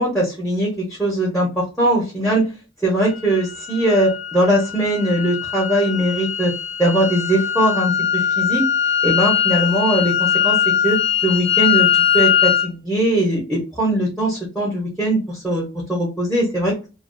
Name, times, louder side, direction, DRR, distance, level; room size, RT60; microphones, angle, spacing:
voice 1, 0.0-2.4 2.8-6.5 6.8-8.7 9.0-11.9 12.1-15.6 15.9-16.7, right 1 dB, ahead, -4 dB, 0.6 m, -20 dB
sound 1, 3.0-12.7, left 9 dB, 70° left, 0.4 m, -21 dB
2.3 x 2.1 x 2.5 m, 0.31 s
head